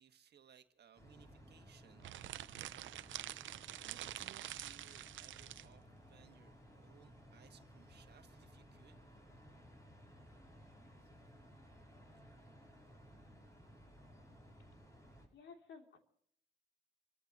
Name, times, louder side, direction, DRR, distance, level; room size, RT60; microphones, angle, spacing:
voice 1, 0.0-2.1 3.8-9.0, right 8 dB, 55° right, 1.6 m, -64 dB
sound 1, 0.9-15.3, equal, 15° left, 5.1 m, -59 dB
sound 2, 2.0-5.7, right 13 dB, 75° right, 0.7 m, -47 dB
voice 2, 15.3-16.0, left 5 dB, 65° left, 3.0 m, -55 dB
29.5 x 14.5 x 3.0 m
cardioid pair, 90°, 20 cm